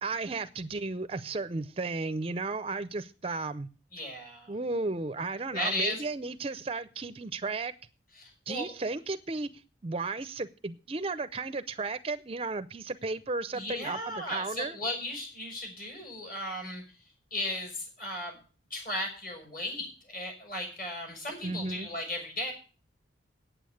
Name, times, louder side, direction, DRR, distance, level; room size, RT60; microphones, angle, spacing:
voice 1, 0.0-3.7 4.5-7.7 8.5-9.5 9.8-14.8 21.4-21.9, right 3 dB, 30° right, 14 dB, 0.5 m, -34 dB
voice 2, 3.9-4.6 5.5-6.0 8.2-8.7 13.5-16.8 17.3-18.4 18.7-22.5, left 1 dB, 50° left, 3 dB, 6.1 m, -35 dB
9.0 x 8.5 x 9.2 m, 0.37 s
head